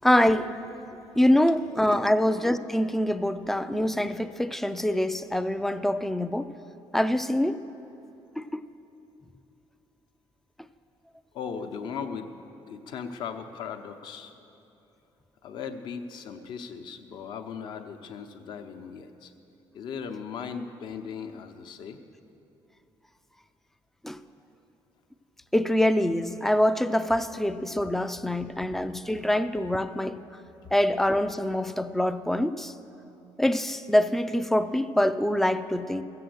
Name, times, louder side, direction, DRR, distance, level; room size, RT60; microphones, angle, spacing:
voice 1, 0.0-0.5 1.2-6.5 6.9-7.6 8.4-8.6 24.0-24.2 25.5-30.2 30.7-32.7 33.4-36.0, left 1 dB, 5° left, 12 dB, 0.3 m, -25 dB
voice 2, 11.3-12.3 12.7-14.3 15.4-19.3 19.7-22.0, left 6 dB, 60° left, 7 dB, 0.8 m, -38 dB
14.5 x 7.8 x 7.8 m, 2.9 s
cardioid pair, 160°, 9 cm